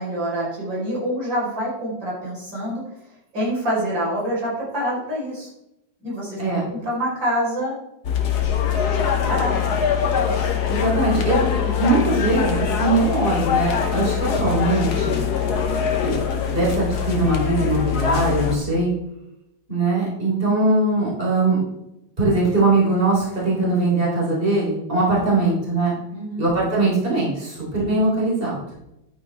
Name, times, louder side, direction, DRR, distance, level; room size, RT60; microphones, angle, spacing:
voice 1, 0.0-2.8 3.3-5.5 6.0-6.4 6.7-7.8 8.9-9.6 26.1-26.4, equal, 85° right, -5 dB, 5.5 m, -26 dB
sound 1, 8.0-18.6, left 7 dB, 60° left, 1.6 m, -22 dB
voice 2, 10.7-11.5 11.8-15.1 16.0-16.2 16.4-18.9 19.7-21.6 22.2-25.9 26.4-28.6, right 2 dB, 30° right, -5 dB, 4.1 m, -21 dB
11.5 x 9.0 x 3.6 m, 0.87 s
omnidirectional pair, 2.0 m